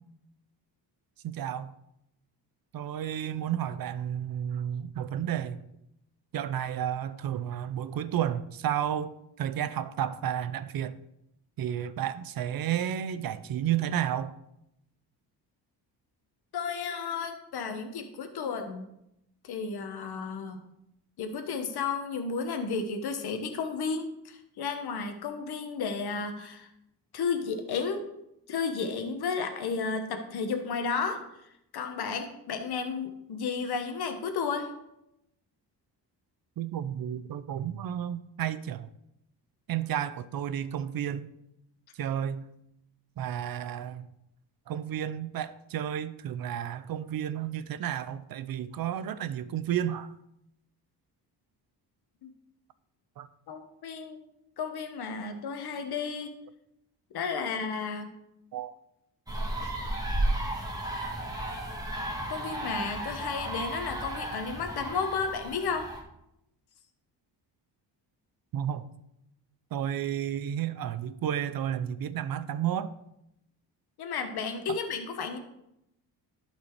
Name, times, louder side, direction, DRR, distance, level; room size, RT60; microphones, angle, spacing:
voice 1, 1.2-1.7 2.7-5.6 6.3-11.0 11.6-14.4 36.6-38.9 39.7-41.3 41.9-42.5 43.2-44.1 44.7-50.1 53.2-53.3 58.5-58.7 59.4-59.5 68.5-68.9 69.7-72.9 74.7-74.8, right 10 dB, 55° right, 0.6 m, -32 dB
voice 2, 16.5-18.9 19.4-20.6 21.2-26.7 27.1-28.1 28.5-31.2 31.7-34.7 52.2-52.3 53.5-54.2 54.6-56.3 57.1-58.1 59.6-59.7 62.3-65.9 74.0-75.4, left 5 dB, 65° left, 1.2 m, -33 dB
sound 1, 59.3-66.0, right 1 dB, 10° right, 1.7 m, -33 dB
11.5 x 4.4 x 4.6 m
cardioid pair, 105°, 42 cm